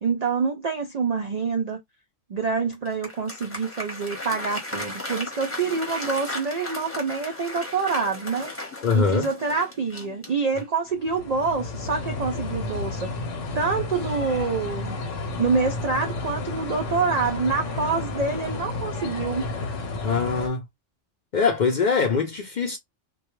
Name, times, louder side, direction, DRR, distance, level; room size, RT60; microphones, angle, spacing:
voice 1, 0.0-1.8 2.3-8.5 8.9-13.1 13.5-15.0 15.4-19.5, right 4 dB, 80° right, 0.3 m, -26 dB
Applause, 2.7-10.9, left 1 dB, 15° left, 0.8 m, -36 dB
voice 2, 8.8-9.3 20.0-20.7 21.3-22.8, left 5 dB, 60° left, 0.5 m, -22 dB
sound 1, 10.9-20.5, left 3 dB, 90° left, 1.1 m, -32 dB
2.3 x 2.2 x 2.9 m
omnidirectional pair, 1.3 m